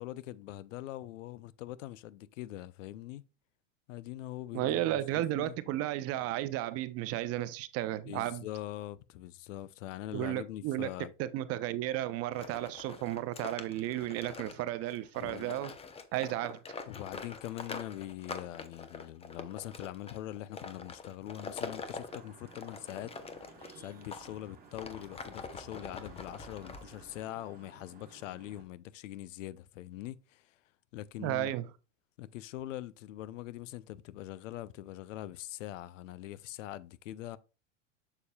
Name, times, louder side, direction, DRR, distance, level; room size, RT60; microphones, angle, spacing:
voice 1, 0.0-3.2 3.9-5.6 8.1-11.1 15.2-15.6 16.9-23.1 23.8-30.5 30.9-31.5 32.2-37.4, left 14 dB, 80° left, 0.6 m, -43 dB
voice 2, 4.5-8.4 10.1-15.7 16.1-16.6 31.2-31.7, right 14 dB, 40° right, 0.6 m, -33 dB
sound 1, 12.3-24.3 24.7-27.2, left 5 dB, 15° left, 0.7 m, -45 dB
Vehicle horn car horn honking / Traffic noise roadway noise, 21.2-28.6, right 5 dB, 25° right, 1.9 m, -56 dB
6.9 x 6.9 x 2.3 m
supercardioid pair, 115°, 37 cm